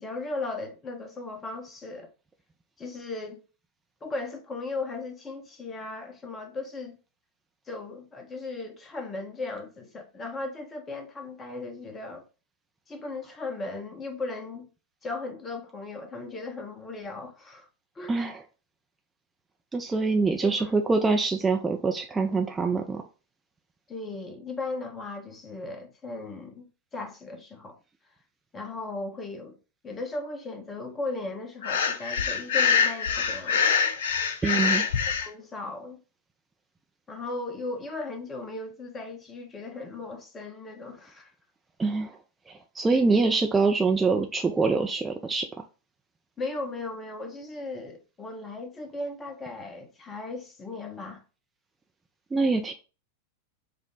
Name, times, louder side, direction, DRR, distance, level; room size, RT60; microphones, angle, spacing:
voice 1, 0.0-2.1 2.8-3.4 4.0-7.0 7.7-12.2 12.9-14.7 15.0-17.7 17.9-18.2 20.4-20.5 23.9-26.7 26.9-27.8 28.5-29.6 29.8-33.6 35.2-36.0 37.1-41.3 46.4-51.2, left 3 dB, 20° left, 1.0 m, -37 dB
voice 2, 18.1-18.4 19.7-23.0 34.4-34.8 41.8-42.2 42.5-45.5 52.3-52.7, right 4 dB, 15° right, 0.4 m, -25 dB
Breathing, 31.6-35.3, left 6 dB, 60° left, 0.5 m, -24 dB
5.0 x 2.1 x 3.7 m
figure-of-eight pair, 90°, 0 cm